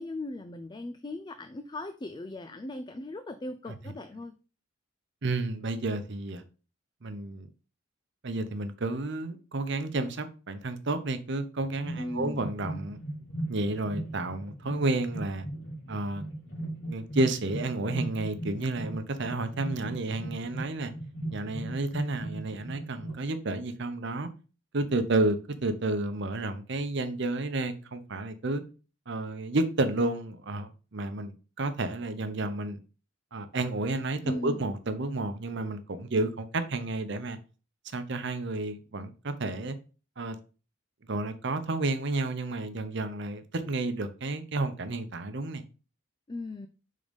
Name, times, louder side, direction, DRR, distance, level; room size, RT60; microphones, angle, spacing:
voice 1, 0.0-4.3 12.0-12.5 34.2-34.6 46.3-46.7, left 1 dB, 20° left, 0.3 m, -38 dB
voice 2, 5.2-6.4 7.0-7.5 8.2-13.0 13.5-15.4 15.9-16.3 16.8-20.9 21.3-24.3 24.7-28.6 29.1-32.8 33.3-37.4 37.9-39.8 40.2-40.4 41.1-45.6, right 2 dB, 60° right, 0.8 m, -31 dB
sound 1, 11.7-23.2, right 1 dB, 60° left, 2.6 m, -38 dB
5.2 x 3.8 x 5.2 m
head